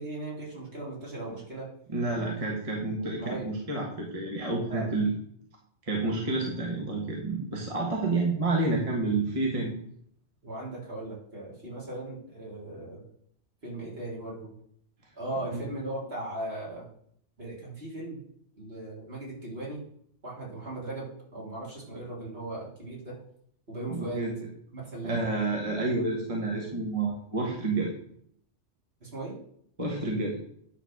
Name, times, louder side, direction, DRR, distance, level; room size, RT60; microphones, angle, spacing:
voice 1, 0.0-1.7 3.0-3.5 4.7-4.9 10.4-13.0 13.6-14.5 15.2-16.9 17.4-18.2 18.6-19.8 20.2-23.2 23.7-24.3 24.7-25.3 29.0-29.4, right 2 dB, 55° right, -5 dB, 3.5 m, -38 dB
voice 2, 1.9-5.2 5.9-9.7 15.5-15.6 23.9-24.3 25.0-27.9 29.8-30.4, right 3 dB, 30° right, -2 dB, 1.6 m, -29 dB
10.0 x 4.1 x 6.3 m, 0.66 s
omnidirectional pair, 1.2 m